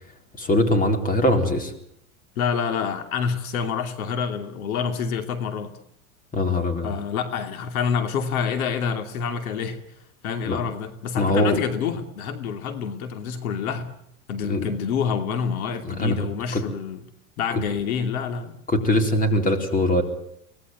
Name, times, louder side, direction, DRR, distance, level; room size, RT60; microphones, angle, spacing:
voice 1, 0.4-1.7 6.3-6.9 10.5-10.6 11.2-11.6 14.4-14.7 15.9-16.2 16.5-16.6 18.7-20.0, left 1 dB, 20° left, 4.0 m, -21 dB
voice 2, 2.4-5.7 6.8-9.8 10.2-13.9 14.3-17.0 17.4-18.6, left 6 dB, 75° left, 2.8 m, -27 dB
24.5 x 18.5 x 9.5 m
supercardioid pair, 130°, 43 cm